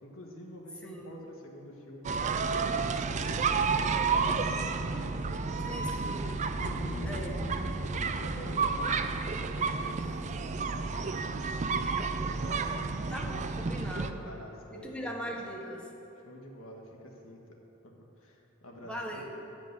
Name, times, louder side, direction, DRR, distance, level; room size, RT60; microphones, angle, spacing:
voice 1, 0.0-3.2 3.7-6.0 6.7-7.4 8.0-13.5 14.0-15.1 16.2-17.4 17.8-17.9 18.2-19.2, equal, 90° left, -1 dB, 1.5 m, -48 dB
sound 1, 2.0-14.1, right 4 dB, 35° right, 0.4 m, -31 dB
voice 2, 5.6-6.3 7.0-7.3 13.1-14.2 14.7-15.9 18.8-19.2, equal, 5° left, -2 dB, 1.0 m, -39 dB
sound 2, 6.6-9.8, left 1 dB, 30° left, 0.6 m, -42 dB
9.3 x 5.2 x 8.0 m, 2.8 s
head